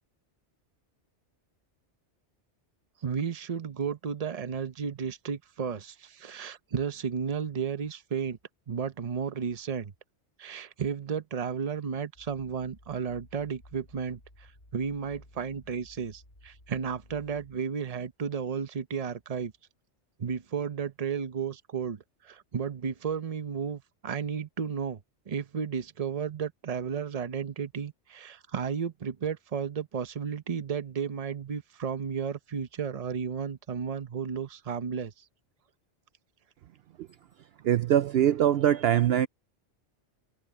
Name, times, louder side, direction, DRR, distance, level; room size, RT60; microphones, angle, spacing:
voice 1, 3.0-8.4 8.7-9.9 10.4-19.5 20.2-25.0 25.3-35.2, right 7 dB, 35° right, 0.8 m, -33 dB
sound 1, 12.1-17.6, left 1 dB, 50° left, 8.3 m, -56 dB
voice 2, 37.6-39.3, right 11 dB, 65° right, 0.7 m, -23 dB
omnidirectional pair, 1.2 m